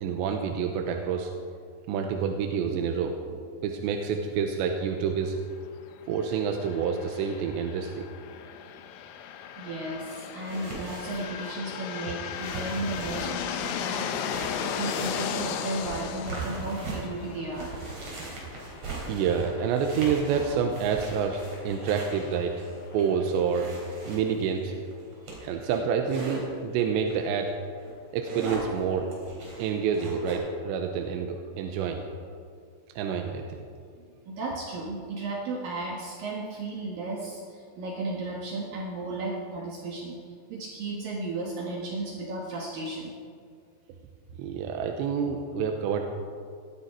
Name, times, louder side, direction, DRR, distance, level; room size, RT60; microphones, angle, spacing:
voice 1, 0.0-1.3 1.9-5.4 6.1-8.0 19.1-22.6 22.9-23.7 24.1-24.7 25.4-27.5 28.1-29.1 29.6-32.1 33.0-33.7 44.4-46.0, right 6 dB, 80° right, 3 dB, 3.0 m, -28 dB
sound 1, 6.2-23.7, left 9 dB, 90° left, 3.3 m, -37 dB
voice 2, 9.6-14.2 14.6-18.0 34.0-40.2 40.5-43.1, right 2 dB, 60° right, -1 dB, 2.7 m, -34 dB
sound 2, 10.4-26.5 27.1-27.3 27.7-30.3, right 2 dB, 35° right, 4.4 m, -40 dB
18.5 x 13.0 x 4.7 m, 2.1 s
omnidirectional pair, 5.3 m